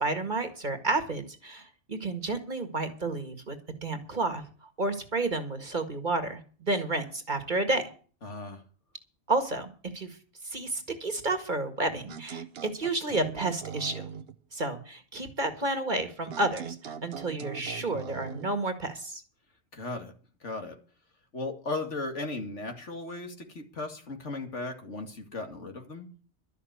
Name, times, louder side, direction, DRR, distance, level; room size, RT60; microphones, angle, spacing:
voice 1, 0.0-3.6 3.8-4.4 4.8-7.8 9.3-10.1 10.4-14.1 14.5-19.2, right 2 dB, 40° right, 7 dB, 1.9 m, -31 dB
voice 2, 8.2-8.6 19.7-20.1 20.4-20.8 21.3-26.1, left 2 dB, 75° left, 4 dB, 2.6 m, -36 dB
sound 1, 12.1-14.3 16.3-18.5, right 7 dB, 60° right, 1.0 m, -40 dB
12.5 x 6.6 x 9.4 m, 0.40 s
omnidirectional pair, 1.2 m